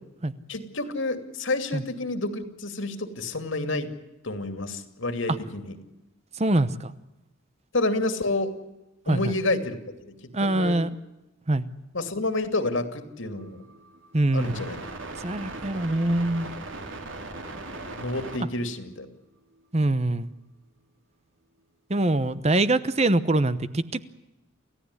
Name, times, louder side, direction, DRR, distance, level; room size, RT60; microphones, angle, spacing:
voice 1, 0.5-3.9 4.2-5.8 7.7-8.5 9.1-9.8 10.4-10.8 11.9-13.6 14.3-14.8 18.0-19.1, left 2 dB, 65° left, 9 dB, 2.6 m, -29 dB
voice 2, 6.4-6.9 9.1-9.3 10.3-10.9 11.5-11.7 14.1-14.6 15.2-16.5 19.7-20.3 21.9-24.0, right 2 dB, 30° right, 14 dB, 0.9 m, -24 dB
sound 1, 13.4-18.4, right 2 dB, 70° right, 3.6 m, -39 dB
28.5 x 15.5 x 9.8 m, 0.99 s
head